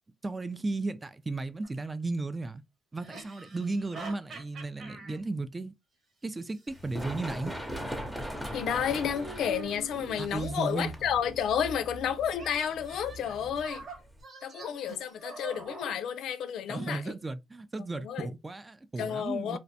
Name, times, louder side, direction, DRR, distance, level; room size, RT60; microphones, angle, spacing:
voice 1, 0.2-2.6 2.9-5.7 6.2-7.5 10.2-10.9 16.7-19.6, right 3 dB, 20° right, 0.3 m, -35 dB
sound 1, 1.6-1.7 3.0-5.2 6.4-7.6 9.1-10.6 12.3-16.0, right 3 dB, 55° right, 1.1 m, -45 dB
Run, 6.7-14.2, equal, 5° right, 0.7 m, -40 dB
voice 2, 8.5-13.8 14.4-17.1 18.0-18.3 19.0-19.6, left 8 dB, 75° left, 0.3 m, -31 dB
2.4 x 2.1 x 2.6 m
cardioid pair, 90°, 0 cm